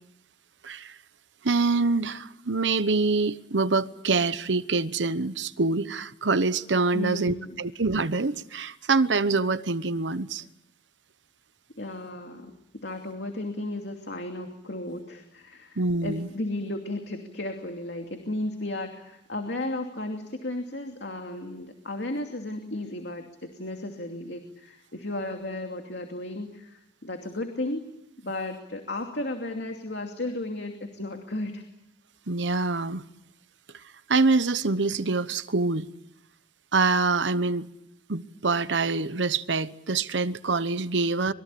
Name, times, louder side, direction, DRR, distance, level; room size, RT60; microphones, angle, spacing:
voice 1, 0.6-1.0 1.4-10.4 15.8-16.3 32.3-33.0 34.1-35.9 36.7-37.7 38.1-41.3, right 3 dB, 90° right, 1.0 m, -25 dB
voice 2, 6.9-7.7 11.8-27.9 28.2-31.6, left 1 dB, 70° left, 2.7 m, -34 dB
27.0 x 23.0 x 8.6 m
head